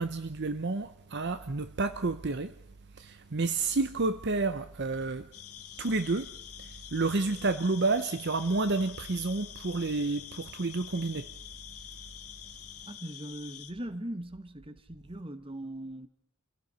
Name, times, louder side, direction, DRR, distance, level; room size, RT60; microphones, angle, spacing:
voice 1, 0.0-2.5 3.0-5.3 5.8-6.3 6.6-11.3, right 3 dB, 50° right, 0.8 m, -30 dB
sound 1, 5.3-13.7, left 12 dB, 85° left, 1.9 m, -46 dB
voice 2, 12.9-16.1, right 1 dB, 25° right, 1.4 m, -40 dB
28.5 x 17.0 x 5.6 m
head